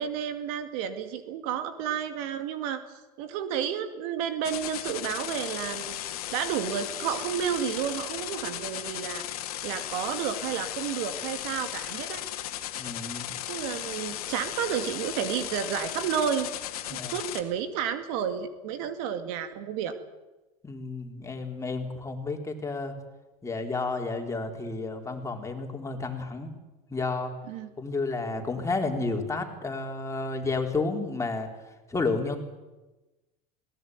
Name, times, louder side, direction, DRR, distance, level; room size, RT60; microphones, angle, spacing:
voice 1, 0.0-2.8 3.2-12.2 13.5-16.5 16.9-20.0 27.5-27.7, right 8 dB, 70° right, 10 dB, 2.3 m, -31 dB
sound 1, 4.4-17.4, left 12 dB, 85° left, 2.3 m, -36 dB
voice 2, 12.8-13.3 16.9-17.1 20.6-22.9 23.4-26.5 26.9-27.3 27.8-31.5 31.9-32.4, left 3 dB, 15° left, 3 dB, 4.1 m, -31 dB
21.0 x 18.5 x 9.5 m, 1.1 s
hypercardioid pair, 100°, 19 cm